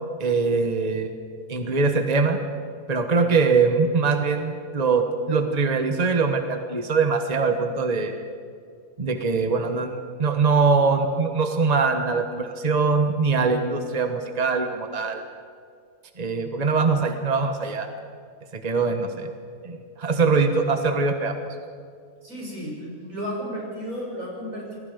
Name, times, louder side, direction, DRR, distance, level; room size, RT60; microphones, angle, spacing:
voice 1, 0.2-1.1 1.5-2.4 2.9-8.2 9.0-15.2 16.2-17.9 18.6-19.3 19.6-21.4, right 4 dB, 30° right, 6 dB, 1.4 m, -22 dB
voice 2, 22.2-24.8, equal, 80° right, -3 dB, 7.5 m, -33 dB
28.0 x 21.5 x 5.2 m, 2.3 s
omnidirectional pair, 1.5 m